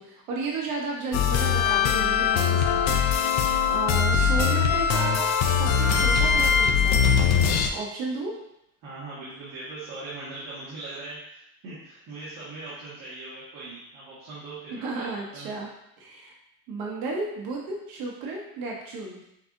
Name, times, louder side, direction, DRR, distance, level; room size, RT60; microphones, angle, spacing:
voice 1, 0.0-7.2 7.7-8.4 14.7-15.7 16.0-16.3 16.7-19.2, right 3 dB, 75° right, -2 dB, 1.0 m, -33 dB
sound 1, 1.1-7.7, left 6 dB, 50° left, 0.4 m, -21 dB
voice 2, 3.9-4.6 8.8-15.1 15.3-15.5, right 2 dB, 60° right, -10 dB, 1.7 m, -40 dB
6.4 x 2.6 x 2.6 m, 0.80 s
cardioid pair, 170°, 36 cm